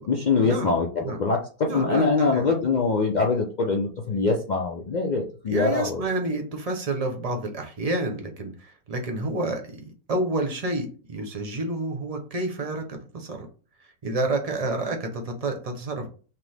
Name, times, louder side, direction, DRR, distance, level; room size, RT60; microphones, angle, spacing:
voice 1, 0.1-6.1, left 4 dB, 85° left, 1 dB, 0.4 m, -23 dB
voice 2, 1.7-2.5 5.5-13.5 14.0-16.1, right 2 dB, 35° right, 4 dB, 0.6 m, -29 dB
5.8 x 2.0 x 3.3 m, 0.38 s
omnidirectional pair, 1.5 m